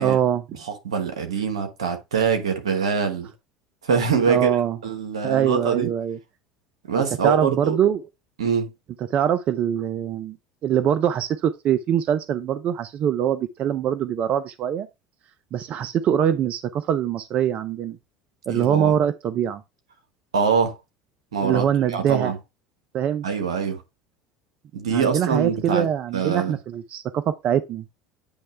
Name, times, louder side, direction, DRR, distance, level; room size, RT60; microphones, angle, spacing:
voice 1, 0.0-0.4 4.3-4.8 5.2-6.2 7.2-8.0 9.1-10.4 10.6-14.9 15.5-18.0 18.5-19.6 21.4-22.3 22.9-23.3 24.9-27.8, right 9 dB, 50° right, 0.6 m, -23 dB
voice 2, 0.6-3.3 3.8-4.5 4.8-5.9 6.9-7.8 8.4-8.7 18.5-19.0 20.3-20.8 21.3-22.4 23.2-23.8 24.7-25.9 26.1-26.6, right 6 dB, 90° right, 1.3 m, -24 dB
8.8 x 3.2 x 4.4 m
hypercardioid pair, 75°, 3 cm